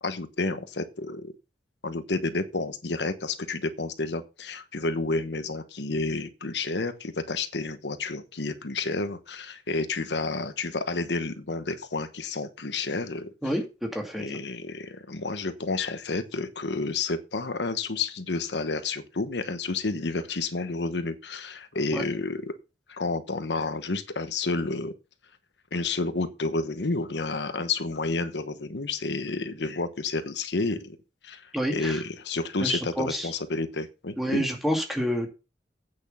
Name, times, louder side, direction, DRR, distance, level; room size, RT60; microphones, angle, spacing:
voice 1, 0.0-1.3 1.8-13.3 14.2-22.5 22.9-24.9 25.7-31.0 31.2-34.4, left 3 dB, 75° left, 10 dB, 1.1 m, -30 dB
voice 2, 13.9-14.4 21.9-22.0 31.5-32.0 32.6-33.3 34.2-35.3, equal, ahead, 3 dB, 2.4 m, -28 dB
8.8 x 6.3 x 6.9 m, 0.30 s
head